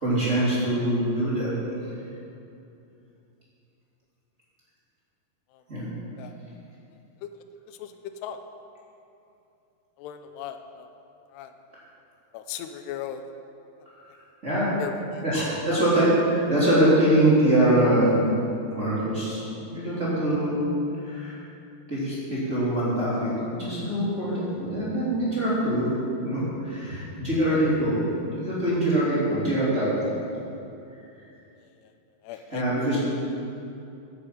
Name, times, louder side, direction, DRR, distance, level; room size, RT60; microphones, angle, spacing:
voice 1, 0.0-1.5 5.7-5.9 14.4-14.8 15.2-18.4 18.7-19.4 19.7-20.6 21.0-21.4 21.9-25.9 26.2-28.0 28.3-30.0 32.5-33.0, right 1 dB, 20° right, -9 dB, 3.3 m, -23 dB
voice 2, 5.5-5.9 6.2-6.3 7.2-7.3 7.7-8.0 8.2-8.4 10.0-10.9 11.3-11.5 12.3-13.3 14.8-15.9 27.5-27.6 31.8-31.9 32.2-32.9, left 9 dB, 85° left, 7 dB, 2.8 m, -38 dB
10.0 x 9.9 x 7.9 m, 2.7 s
omnidirectional pair, 4.7 m